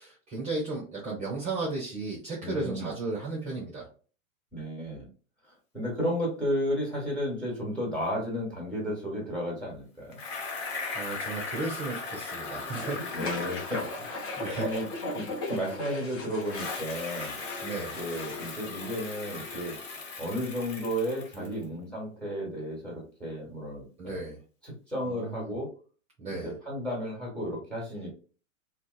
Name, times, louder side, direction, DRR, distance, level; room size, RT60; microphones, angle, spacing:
voice 1, 0.0-3.9 10.5-13.1 14.4-14.7 17.6-18.0 21.3-21.8 24.0-24.4 25.0-25.6 26.2-26.6, right 3 dB, 15° right, -3 dB, 0.8 m, -35 dB
voice 2, 2.4-2.9 4.5-5.1 5.7-10.2 13.1-14.2 14.6-14.8 15.1-17.4 18.0-19.8 20.2-24.2 24.6-25.7 26.3-28.1, equal, ahead, -2 dB, 1.4 m, -33 dB
Bicycle, 10.1-16.0 16.4-21.6, left 4 dB, 50° left, 1.1 m, -38 dB
sound 1, 12.7-18.6, left 1 dB, 30° left, 0.8 m, -37 dB
2.7 x 2.2 x 2.3 m, 0.38 s
hypercardioid pair, 120°, 42 cm